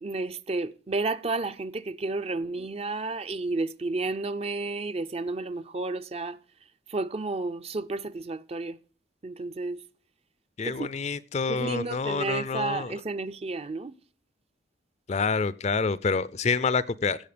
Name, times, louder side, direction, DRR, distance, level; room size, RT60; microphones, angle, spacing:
voice 1, 0.0-6.4 6.9-8.8 9.2-9.8 10.6-10.9 11.5-13.9, right 3 dB, 35° right, 0.5 m, -31 dB
voice 2, 10.6-12.9 15.1-17.2, left 4 dB, 40° left, 0.5 m, -27 dB
16.5 x 7.3 x 5.1 m
head